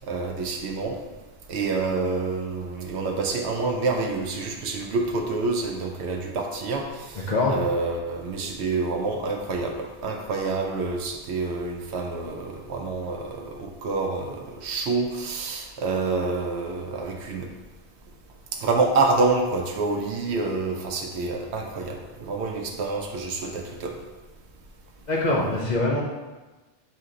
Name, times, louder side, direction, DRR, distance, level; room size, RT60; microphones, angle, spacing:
voice 1, 0.1-1.0 1.5-17.5 18.6-24.0, right 3 dB, 70° right, 2 dB, 0.9 m, -27 dB
voice 2, 25.1-26.0, left 2 dB, 50° left, -3 dB, 0.6 m, -23 dB
4.3 x 2.9 x 3.7 m, 1.2 s
omnidirectional pair, 1.2 m